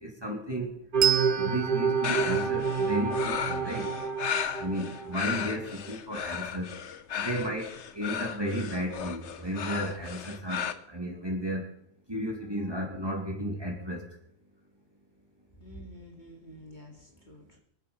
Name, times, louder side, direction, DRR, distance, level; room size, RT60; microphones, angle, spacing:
voice 1, 0.0-0.7 1.3-3.9 4.6-6.7 7.2-7.7 7.9-11.6 12.1-14.0, equal, 15° right, -1 dB, 3.1 m, -33 dB
sound 1, 0.9-5.5, right 5 dB, 40° right, 1.3 m, -29 dB
Bell, 1.0-4.1, right 10 dB, 70° right, 1.1 m, -32 dB
sound 2, 2.0-10.7, left 8 dB, 60° left, 1.1 m, -35 dB
voice 2, 7.2-7.5 8.0-8.1 15.6-17.6, equal, 30° left, -1 dB, 2.8 m, -48 dB
24.5 x 8.5 x 5.7 m, 0.67 s
omnidirectional pair, 1.5 m